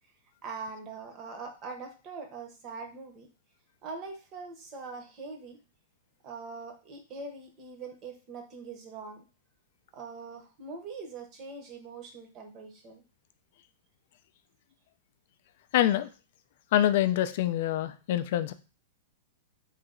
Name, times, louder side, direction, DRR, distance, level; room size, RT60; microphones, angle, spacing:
voice 1, 0.4-3.3 3.8-5.6 6.2-9.2 9.9-13.0, right 4 dB, 25° right, 4 dB, 0.7 m, -42 dB
voice 2, 15.7-16.1 16.7-18.5, left 12 dB, 50° left, 11 dB, 0.3 m, -25 dB
3.2 x 2.9 x 3.7 m, 0.34 s
supercardioid pair, 165°, 0 cm